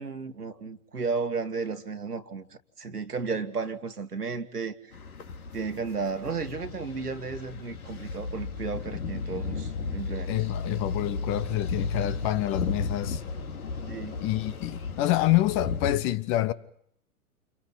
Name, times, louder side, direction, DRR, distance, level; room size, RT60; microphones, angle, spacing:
voice 1, 0.0-2.5 2.8-4.7 5.5-10.3 13.9-14.2, right 4 dB, 85° right, 2.0 m, -33 dB
sound 1, 4.9-16.0, left 4 dB, 70° left, 2.6 m, -34 dB
voice 2, 10.3-13.2 14.2-16.5, left 15 dB, 30° left, 0.9 m, -27 dB
29.5 x 29.0 x 3.9 m
figure-of-eight pair, 110°, 45 cm